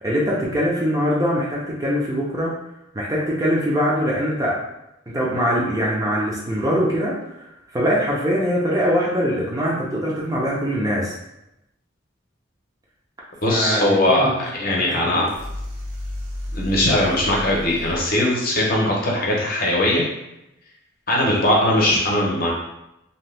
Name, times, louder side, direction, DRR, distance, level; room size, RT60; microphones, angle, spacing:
voice 1, 0.0-2.5 2.9-4.6 5.1-11.1 13.5-14.3 14.6-15.3, equal, 20° right, -4 dB, 0.5 m, -22 dB
voice 2, 13.4-14.2 14.6-15.3 16.5-20.0 21.1-22.5, left 1 dB, 50° left, -3 dB, 0.7 m, -20 dB
sound 1, 15.2-18.2, left 1 dB, 85° right, 0.7 m, -32 dB
2.7 x 2.2 x 3.2 m, 0.87 s
head